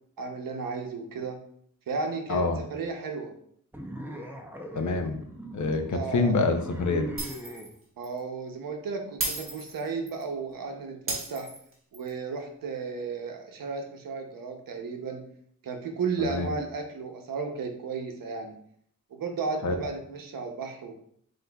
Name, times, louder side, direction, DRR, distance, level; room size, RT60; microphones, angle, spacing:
voice 1, 0.2-1.4 1.9-2.4 2.7-3.3 5.9-6.4 8.0-11.5 11.9-15.2 15.6-18.5 19.1-20.9, right 4 dB, 90° right, 4 dB, 0.8 m, -34 dB
voice 2, 2.3-2.6 4.7-5.2 5.5-7.2 16.2-16.5 19.6-19.8, left 3 dB, 60° left, 6 dB, 0.6 m, -26 dB
sound 1, 3.7-7.7, right 1 dB, 5° right, 0.5 m, -40 dB
Shatter, 7.2-7.7 8.0-8.2 9.2-10.2 11.1-12.1, right 2 dB, 40° right, 1.4 m, -34 dB
7.7 x 2.6 x 2.3 m, 0.65 s
wide cardioid pair, 110°, 33 cm